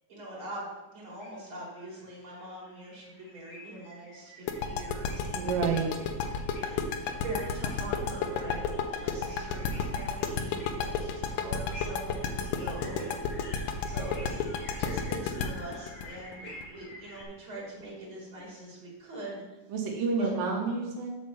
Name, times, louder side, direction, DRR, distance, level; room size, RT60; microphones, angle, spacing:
voice 1, 0.1-5.5 6.6-14.5 14.8-19.4 20.2-20.3, right 1 dB, 40° right, -5 dB, 3.4 m, -42 dB
sound 1, 1.1-17.2, left 1 dB, 30° left, 1.3 m, -50 dB
sound 2, 4.5-17.2, left 6 dB, 85° left, 2.3 m, -31 dB
voice 2, 5.3-6.0 19.7-21.2, right 4 dB, 85° right, 1 dB, 2.5 m, -29 dB
7.0 x 4.2 x 6.6 m, 1.1 s
omnidirectional pair, 3.9 m